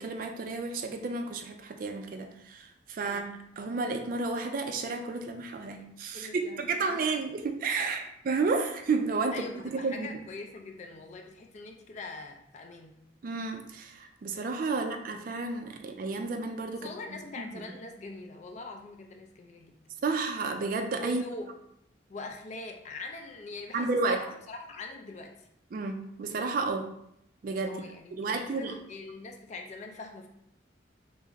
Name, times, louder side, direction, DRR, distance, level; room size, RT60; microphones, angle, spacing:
voice 1, 0.0-10.1 13.2-17.5 20.0-21.2 23.7-24.3 25.7-26.9 27.4-27.8 28.1-28.7, right 3 dB, 45° right, 5 dB, 0.3 m, -32 dB
voice 2, 6.1-6.6 6.9-7.2 7.8-7.9 9.3-13.0 14.7-14.9 16.7-19.8 21.0-21.5 22.1-25.5 27.6-30.3, left 3 dB, 40° left, 3 dB, 0.3 m, -43 dB
3.5 x 2.0 x 3.3 m, 0.77 s
head